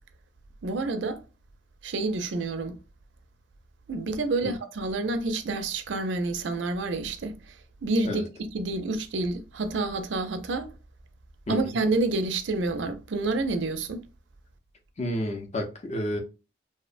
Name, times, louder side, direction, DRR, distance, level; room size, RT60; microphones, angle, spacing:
voice 1, 0.6-1.2 1.8-2.8 3.9-10.7 11.5-14.0, right 3 dB, 75° right, 0.4 m, -28 dB
voice 2, 11.5-11.8 15.0-16.2, left 1 dB, 35° left, 0.5 m, -30 dB
2.7 x 2.1 x 2.4 m
head